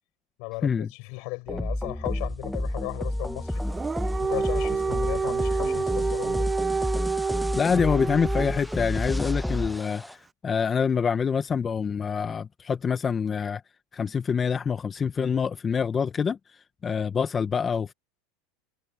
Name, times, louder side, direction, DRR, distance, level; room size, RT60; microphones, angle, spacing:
voice 1, 0.4-3.7 4.2-6.5, left 31 dB, 60° left, 5.3 m, -36 dB
sound 1, 1.5-10.1, left 1 dB, 5° left, 1.0 m, -30 dB
Dog, 3.6-8.8, right 5 dB, 20° right, 0.6 m, -28 dB
voice 2, 7.2-13.6 13.9-17.9, left 6 dB, 25° left, 1.2 m, -26 dB
hypercardioid pair, 105°, 0 cm